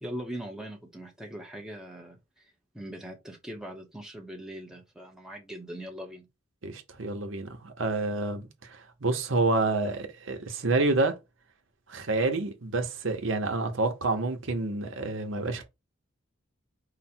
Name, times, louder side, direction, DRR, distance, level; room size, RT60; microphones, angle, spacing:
voice 1, 0.0-6.3, equal, 5° right, 0.8 m, -41 dB
voice 2, 6.6-11.2 11.9-15.6, right 3 dB, 80° right, 0.9 m, -28 dB
5.0 x 2.2 x 4.3 m
head